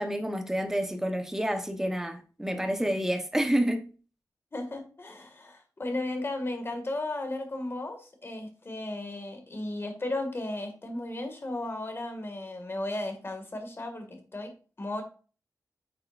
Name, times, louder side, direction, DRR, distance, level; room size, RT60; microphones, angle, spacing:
voice 1, 0.0-3.8, equal, 5° right, 1.1 m, -29 dB
voice 2, 4.5-14.5 14.8-15.0, left 2 dB, 35° left, 2.1 m, -35 dB
9.8 x 5.8 x 2.6 m
wide cardioid pair, 140°, 7 cm